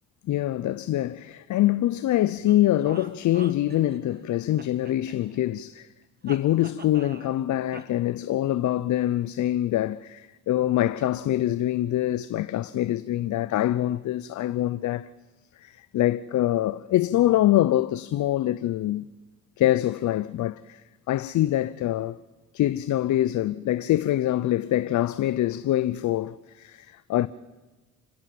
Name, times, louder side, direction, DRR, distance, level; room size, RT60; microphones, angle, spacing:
voice 1, 0.3-5.9 6.2-15.1 15.6-19.0 19.6-20.8 21.1-22.2 22.5-27.3, left 13 dB, 70° left, 0.7 m, -24 dB
sound 1, 2.5-4.2 4.6-5.6 6.3-7.4 7.7-7.8, right 5 dB, 30° right, 1.8 m, -44 dB
28.5 x 15.5 x 7.8 m
cardioid pair, 90°, 30 cm